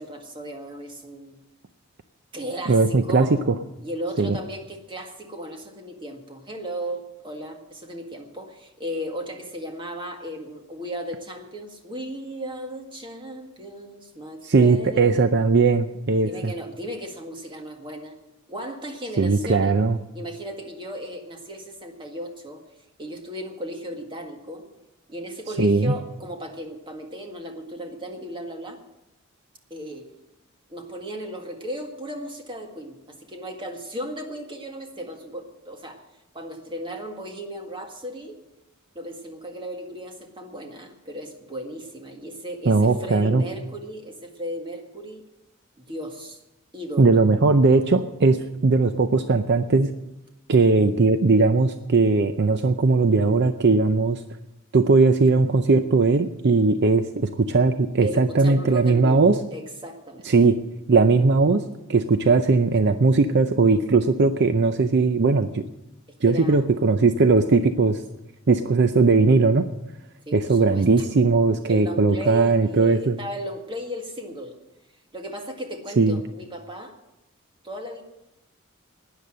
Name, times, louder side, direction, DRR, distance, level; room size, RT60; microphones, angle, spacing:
voice 1, 0.0-1.4 2.3-3.3 3.8-15.4 16.2-18.1 18.5-19.7 20.1-22.6 23.0-24.6 25.1-28.8 29.7-30.1 30.7-36.0 36.3-38.4 39.0-45.2 45.8-46.4 46.7-47.2 58.0-59.2 59.5-60.3 66.3-66.6 70.3-71.0 71.7-74.6 75.1-76.9 77.6-78.0, equal, 25° right, 3 dB, 1.9 m, -35 dB
voice 2, 2.7-3.5 4.2-4.4 14.4-16.5 19.2-20.0 25.6-26.0 42.7-43.4 47.0-48.4 48.6-49.9 50.5-54.2 54.7-59.4 60.2-60.6 60.9-61.6 61.9-65.6 66.2-68.0 68.5-69.7 70.3-73.2 76.0-76.2, right 3 dB, 55° right, 9 dB, 0.6 m, -19 dB
12.0 x 10.0 x 7.7 m, 0.93 s
head